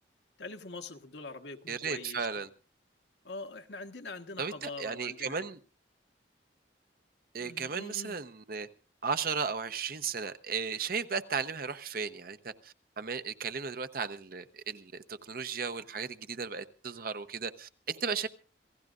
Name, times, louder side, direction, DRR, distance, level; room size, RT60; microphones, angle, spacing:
voice 1, 0.4-2.3 3.2-5.4 7.4-8.2, left 3 dB, 80° left, 1.3 m, -43 dB
voice 2, 1.7-2.5 4.4-5.6 7.3-8.7 9.0-18.3, right 5 dB, 55° right, 0.9 m, -35 dB
27.0 x 16.5 x 2.5 m
head